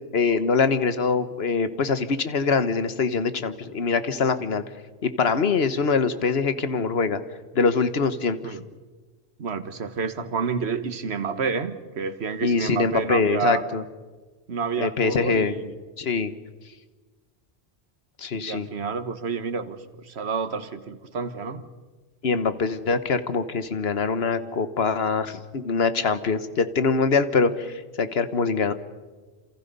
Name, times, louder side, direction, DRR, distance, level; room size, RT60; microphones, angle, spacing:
voice 1, 0.1-4.6 5.0-7.2 7.5-8.6 12.4-13.8 14.8-15.5 16.0-16.3 18.2-18.7 22.2-28.7, left 5 dB, 70° left, 11 dB, 1.4 m, -23 dB
voice 2, 9.4-13.6 14.5-15.7 18.3-21.6, right 5 dB, 80° right, 11 dB, 1.5 m, -29 dB
28.0 x 27.5 x 5.4 m, 1.3 s
omnidirectional pair, 1.1 m